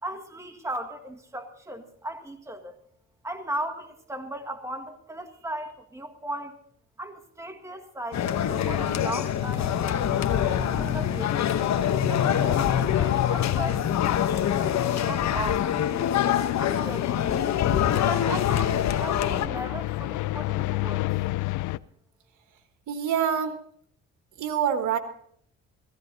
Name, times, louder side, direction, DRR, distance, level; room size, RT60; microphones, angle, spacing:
voice 1, 0.0-2.8 3.2-6.6 7.0-9.7 10.0-11.5 12.1-16.1 16.6-17.5 18.0-21.1, right 1 dB, 10° right, 4 dB, 1.8 m, -37 dB
sound 1, 8.1-19.5, left 9 dB, 65° left, 1.1 m, -25 dB
sound 2, 10.1-21.8, left 17 dB, 85° left, 0.5 m, -31 dB
voice 2, 22.9-23.6 24.4-25.0, right 8 dB, 80° right, 8 dB, 1.5 m, -25 dB
15.5 x 15.5 x 4.0 m, 0.63 s
cardioid pair, 90°, 30 cm